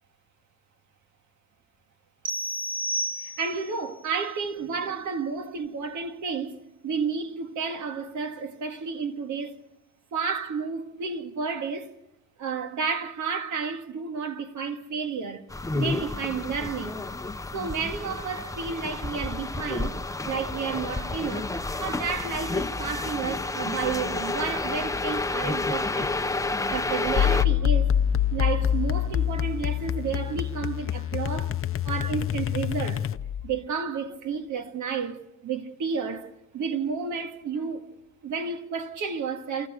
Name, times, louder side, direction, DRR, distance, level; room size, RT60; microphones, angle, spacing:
sound 1, 2.3-3.8, equal, 15° right, 1.6 m, -31 dB
voice 1, 3.2-9.6 10.1-11.9 12.4-15.4 15.7-17.0 17.5-21.5 21.8-26.1 26.7-28.0 28.3-31.6 31.8-33.0 33.4-37.9 38.2-39.7, right 5 dB, 75° right, 2.0 m, -31 dB
sound 2, 15.5-27.5, left 3 dB, 10° left, 0.7 m, -30 dB
sound 3, 27.2-33.5, left 9 dB, 45° left, 0.7 m, -26 dB
28.5 x 14.0 x 6.5 m
cardioid pair, 90°, 30 cm